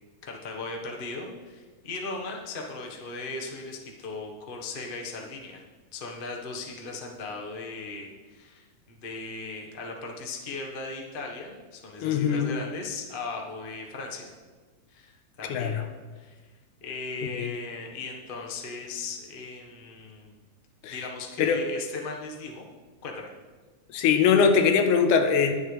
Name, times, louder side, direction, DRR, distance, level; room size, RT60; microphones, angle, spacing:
voice 1, 0.2-5.6 5.9-14.3 14.9-15.8 16.1-16.4 16.8-20.3 20.9-22.7 23.0-23.3 23.9-24.0, left 3 dB, 60° left, 0 dB, 0.5 m, -37 dB
voice 2, 12.0-12.5 15.5-15.9 17.2-17.5 20.8-21.0 21.4-21.6 23.9-25.5, left 6 dB, 90° left, 7 dB, 2.4 m, -22 dB
20.5 x 7.7 x 3.3 m, 1.4 s
omnidirectional pair, 3.5 m